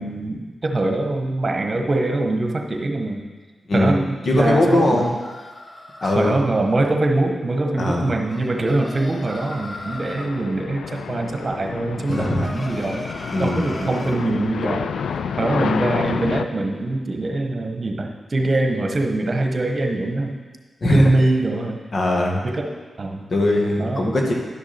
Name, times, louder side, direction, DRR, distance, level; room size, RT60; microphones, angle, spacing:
voice 1, 0.0-3.3 3.7-5.1 6.0-13.1 13.4-14.9 15.4-20.4 20.8-21.8 22.4-23.2 23.8-24.1, right 2 dB, 45° right, 3 dB, 1.2 m, -23 dB
voice 2, 4.3-5.1 6.0-6.4 7.8-8.1 12.1-12.5 13.3-13.7 20.8-21.1 21.9-22.4 23.3-24.3, left 1 dB, 55° left, 0 dB, 1.8 m, -20 dB
sound 1, 4.3-6.3 8.3-10.3 12.1-14.2, left 1 dB, 30° left, 1.4 m, -37 dB
sound 2, 8.6-16.5, left 6 dB, 85° left, 0.4 m, -30 dB
11.0 x 6.2 x 4.3 m, 1.4 s
cardioid pair, 55°, 0 cm